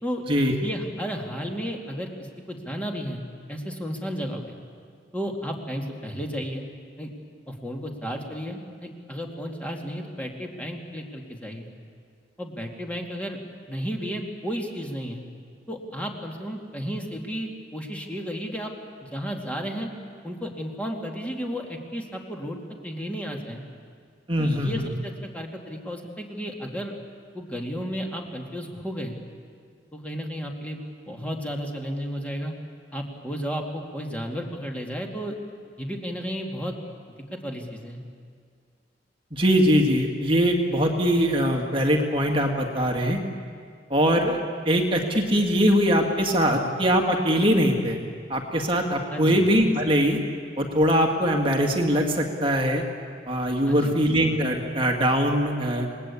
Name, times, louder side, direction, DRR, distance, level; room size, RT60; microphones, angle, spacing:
voice 1, 0.6-3.2 3.5-4.6 5.1-6.6 7.0-7.1 7.5-11.7 12.4-13.4 13.7-15.2 15.7-18.7 19.0-19.9 20.2-23.6 24.4-26.9 27.3-29.2 29.9-30.8 31.1-32.5 32.9-35.3 35.8-36.8 37.3-38.0 49.1-49.4 53.6-54.0, equal, 10° left, 1 dB, 2.4 m, -33 dB
voice 2, 24.3-24.9 39.3-43.2 43.9-48.0 48.3-50.2 50.6-52.8 53.3-55.9, equal, 30° right, 2 dB, 2.2 m, -22 dB
29.0 x 20.5 x 8.5 m, 2.1 s
head